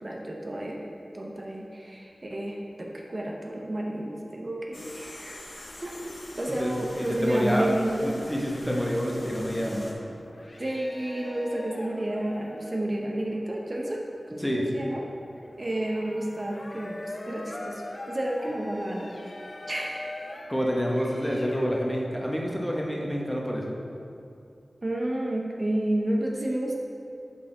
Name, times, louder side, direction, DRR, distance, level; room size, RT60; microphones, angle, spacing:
voice 1, 0.0-5.9 6.3-8.2 10.6-14.0 14.3-14.4 14.7-15.1 15.6-19.3 19.7-20.0 21.0-21.1 24.8-26.8, right 1 dB, 45° right, -1 dB, 0.7 m, -31 dB
sound 1, 4.7-9.9, left 1 dB, 70° left, 0.8 m, -44 dB
voice 2, 7.1-7.7 8.0-9.9 14.4-14.6 20.5-23.7, equal, 5° left, -2 dB, 1.0 m, -28 dB
sound 2, 9.1-21.7, left 1 dB, 50° left, 0.5 m, -43 dB
7.9 x 4.2 x 3.8 m, 2.6 s
wide cardioid pair, 50°, 0 cm